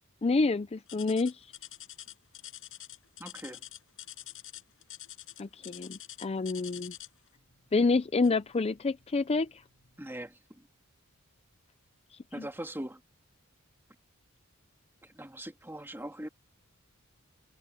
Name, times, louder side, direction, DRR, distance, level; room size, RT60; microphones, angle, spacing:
voice 1, 0.2-1.5 5.4-6.9 7.7-9.6 12.4-12.5, left 3 dB, 30° left, 0.5 m, -28 dB
sound 1, 0.9-7.3 8.2-8.5 9.0-9.1 9.8-9.9, left 13 dB, 65° left, 7.4 m, -46 dB
voice 2, 3.2-3.6 10.0-10.6 12.3-13.0 15.0-16.3, right 1 dB, 10° right, 2.2 m, -41 dB
head